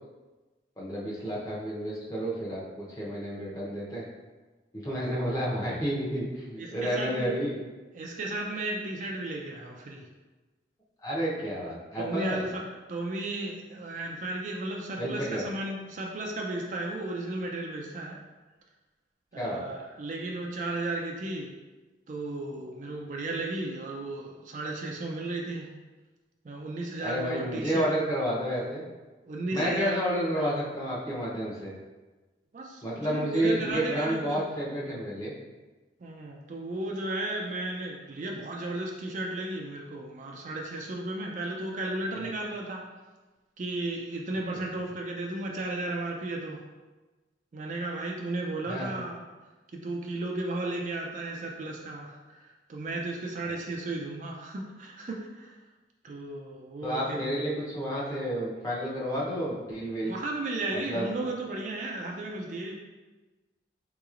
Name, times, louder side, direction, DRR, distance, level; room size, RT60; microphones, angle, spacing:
voice 1, 0.8-4.0 4.7-7.6 11.0-12.5 15.0-15.4 19.4-19.6 27.0-28.8 29.5-31.7 32.8-35.3 42.1-42.3 48.7-48.9 56.8-60.1 60.7-61.1, equal, 20° left, -6 dB, 0.7 m, -30 dB
voice 2, 6.6-7.3 7.9-10.1 12.0-12.6 12.9-18.2 19.3-21.5 22.1-25.7 26.4-27.9 29.2-30.0 32.5-34.4 36.0-42.8 43.6-46.6 47.5-49.2 49.7-55.5 56.0-57.3 60.0-62.7, right 2 dB, 40° right, 0 dB, 0.3 m, -34 dB
3.9 x 2.9 x 2.4 m, 1.2 s
head